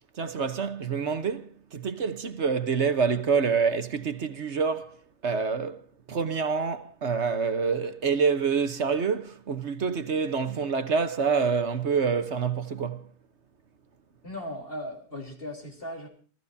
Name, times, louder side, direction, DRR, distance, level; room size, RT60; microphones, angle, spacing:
voice 1, 0.1-13.1, right 5 dB, 45° right, 1.2 m, -27 dB
voice 2, 14.2-16.1, left 1 dB, 35° left, 3.7 m, -37 dB
29.0 x 15.5 x 2.7 m
omnidirectional pair, 1.8 m